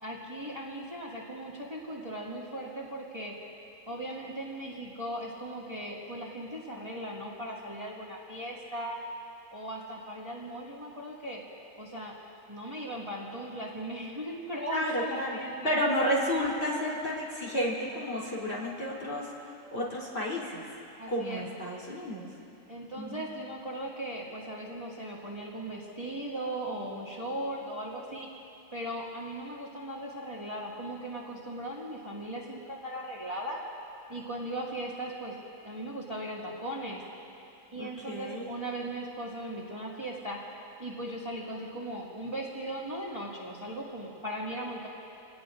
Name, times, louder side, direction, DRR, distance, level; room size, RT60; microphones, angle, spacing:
voice 1, 0.0-3.3 3.9-9.0 9.5-11.4 11.8-12.1 12.5-15.7 21.0-21.4 22.7-28.3 28.7-33.6 34.1-35.3 35.6-37.0 37.7-40.4 40.8-44.9, right 1 dB, 15° right, -5 dB, 2.1 m, -38 dB
voice 2, 14.7-15.4 15.6-20.7 21.1-22.3 23.0-23.2 37.8-38.5, equal, 35° left, -6 dB, 3.9 m, -31 dB
28.0 x 18.5 x 2.6 m, 2.6 s
omnidirectional pair, 1.9 m